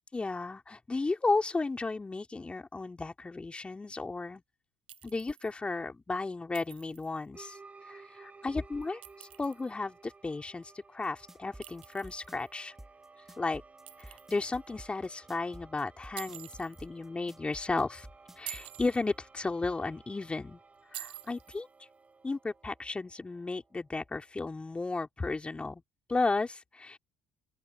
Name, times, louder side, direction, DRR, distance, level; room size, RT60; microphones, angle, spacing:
voice 1, 0.1-4.4 5.0-7.6 7.9-12.7 13.4-13.6 14.0-18.1 18.4-20.6 20.9-21.7 22.2-25.8 26.1-27.0, left 3 dB, 20° left, 4.1 m, -34 dB
Chink clink, 4.9-5.5 6.5-7.2 8.8-9.7 11.6-12.5 13.9-14.6 16.2-16.8 18.3-19.1 20.9-21.6, right 13 dB, 75° right, 4.1 m, -47 dB
sound 1, 7.3-24.5, right 4 dB, 25° right, 6.1 m, -57 dB
sound 2, 11.0-18.9, right 1 dB, 5° right, 2.9 m, -50 dB
open air
figure-of-eight pair, 55°, 6 cm